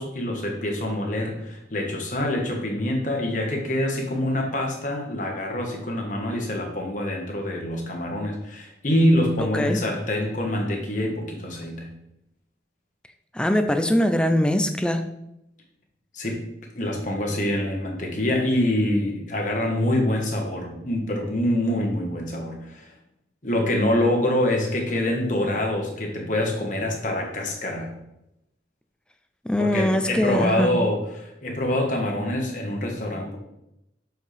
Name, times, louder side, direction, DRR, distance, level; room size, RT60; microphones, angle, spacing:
voice 1, 0.0-11.9 16.1-16.4 16.7-22.9 23.4-27.9 29.6-33.4, left 1 dB, 45° left, 1 dB, 1.3 m, -25 dB
voice 2, 13.3-15.1 29.4-30.7, equal, 5° left, 8 dB, 0.4 m, -22 dB
7.2 x 4.6 x 3.4 m, 0.84 s
head